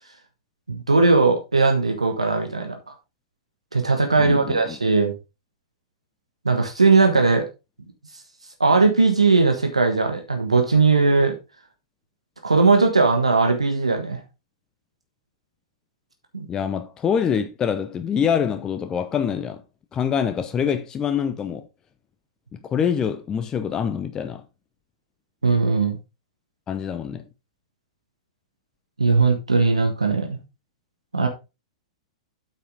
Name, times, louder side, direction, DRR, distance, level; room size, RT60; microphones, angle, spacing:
voice 1, 0.7-2.8 3.7-5.1 6.4-7.5 8.6-11.3 12.4-14.2 16.3-16.5 25.4-26.0 29.0-30.4 31.1-31.3, right 3 dB, 80° right, 1.3 m, -19 dB
voice 2, 4.2-4.8 16.5-19.6 19.9-21.7 22.5-24.4 26.7-27.3, left 7 dB, 20° left, 0.7 m, -25 dB
8.8 x 5.8 x 3.7 m
figure-of-eight pair, 100°, 3 cm